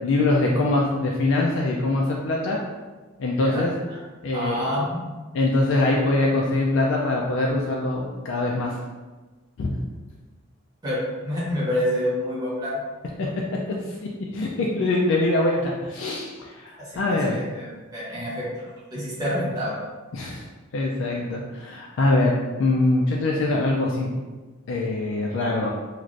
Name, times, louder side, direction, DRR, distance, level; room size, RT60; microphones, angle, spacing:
voice 1, 0.0-2.6 3.2-3.7 4.2-4.7 5.3-8.8 9.6-9.8 13.7-14.0 14.3-17.4 20.1-20.4 20.7-24.1 24.7-25.7, left 2 dB, 65° left, -2 dB, 0.3 m, -23 dB
voice 2, 3.4-4.0 4.3-5.1 10.8-12.8 13.2-13.3 16.8-19.8, equal, 20° right, -8 dB, 0.9 m, -28 dB
3.1 x 2.5 x 2.5 m, 1.3 s
head